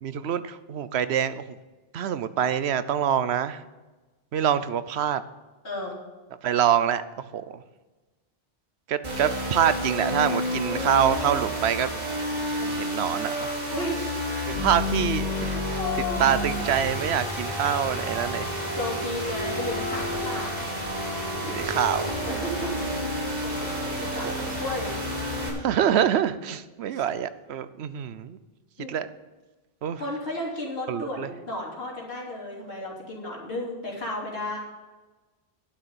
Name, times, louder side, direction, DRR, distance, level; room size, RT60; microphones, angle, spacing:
voice 1, 0.0-1.6 1.9-3.6 4.3-5.2 6.4-7.6 8.9-11.9 12.6-13.5 14.5-15.8 16.2-18.5 21.4-22.1 24.2-24.5 25.6-28.4 28.9-29.1 29.8-30.0 30.9-31.3, right 9 dB, 85° right, 14 dB, 0.9 m, -25 dB
voice 2, 5.6-5.9 13.7-14.1 14.4-14.7 15.5-17.1 18.8-20.6 22.3-22.9 23.4-23.5 24.0-24.9 26.9-27.0 28.8-28.9 29.9-34.6, left 2 dB, 75° left, -3 dB, 3.5 m, -33 dB
sound 1, 9.0-25.5, equal, 35° right, 5.6 m, -30 dB
11.5 x 6.6 x 8.8 m, 1.2 s
omnidirectional pair, 1.1 m